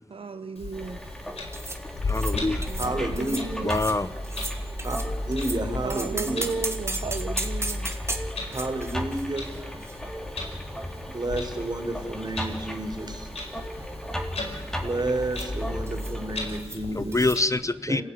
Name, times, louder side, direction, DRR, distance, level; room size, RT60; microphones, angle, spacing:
voice 1, 0.1-1.0 2.7-3.8 5.8-8.0, right 5 dB, 65° right, 9 dB, 0.9 m, -35 dB
Clock, 0.5-17.4, left 3 dB, 85° left, 4.7 m, -37 dB
sound 1, 0.7-16.6, equal, 5° left, 3.9 m, -35 dB
sound 2, 1.5-1.8 2.1-2.3 2.6-2.9 3.2-3.4 3.7-4.0 4.2-5.6 5.9-10.6 10.8-10.9 11.7-12.6 12.9-13.2 13.4-13.9 15.3-15.5 15.9-16.2 16.5-16.8 17.1-17.4, right 2 dB, 25° right, 2.7 m, -36 dB
voice 2, 2.0-2.6 3.6-4.1 14.4-14.7 16.9-18.0, left 2 dB, 30° left, 15 dB, 0.8 m, -26 dB
voice 3, 2.8-3.4 4.8-5.0 5.3-6.4 8.5-9.5 11.1-13.3 14.8-17.3 17.9-18.0, right 2 dB, 45° right, 6 dB, 4.1 m, -30 dB
26.5 x 16.5 x 9.8 m, 1.4 s
cardioid pair, 50°, 10 cm